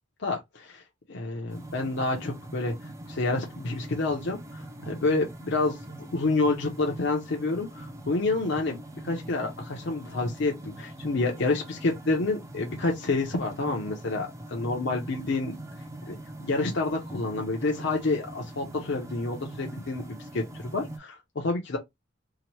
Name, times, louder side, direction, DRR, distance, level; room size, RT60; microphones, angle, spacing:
voice 1, 0.2-0.8 1.1-2.7 3.1-15.6 16.1-16.2 16.4-21.8, left 3 dB, 60° left, 0.6 m, -28 dB
sound 1, 1.5-21.0, right 1 dB, 15° right, 0.4 m, -42 dB
2.8 x 2.1 x 3.0 m
head